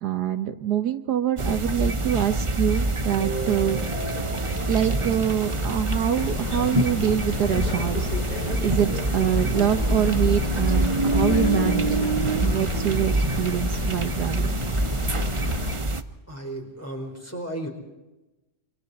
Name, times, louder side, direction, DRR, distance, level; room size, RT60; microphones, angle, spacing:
voice 1, 0.0-3.8 4.7-8.1 8.6-12.0 12.4-14.5, right 10 dB, 70° right, 8 dB, 1.5 m, -25 dB
sound 1, 1.4-16.0, right 2 dB, 25° right, 0.7 m, -26 dB
sound 2, 3.2-12.9, left 1 dB, 85° left, 3.4 m, -36 dB
sound 3, 6.2-15.8, left 6 dB, 70° left, 1.7 m, -34 dB
voice 2, 16.3-17.7, right 1 dB, 10° left, 1 dB, 4.6 m, -34 dB
29.0 x 25.0 x 4.3 m, 1.0 s
omnidirectional pair, 1.8 m